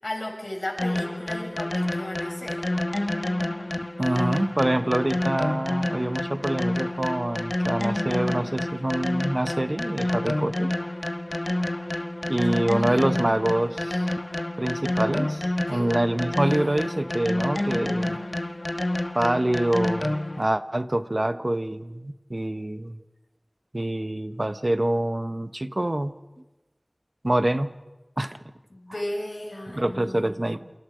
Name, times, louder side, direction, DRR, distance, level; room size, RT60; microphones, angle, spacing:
voice 1, 0.0-2.6 12.4-13.1 15.7-15.9 28.7-30.5, left 1 dB, 80° left, 1 dB, 6.1 m, -35 dB
sound 1, 0.8-20.4, left 1 dB, 50° left, 1.2 m, -28 dB
voice 2, 4.0-10.7 12.3-14.0 14.6-18.2 19.1-23.0 23.7-26.1 27.2-27.7 28.2-28.4 29.7-30.7, right 1 dB, 45° right, 11 dB, 1.1 m, -26 dB
28.0 x 27.0 x 5.1 m, 1.1 s
wide cardioid pair, 40°, 0 cm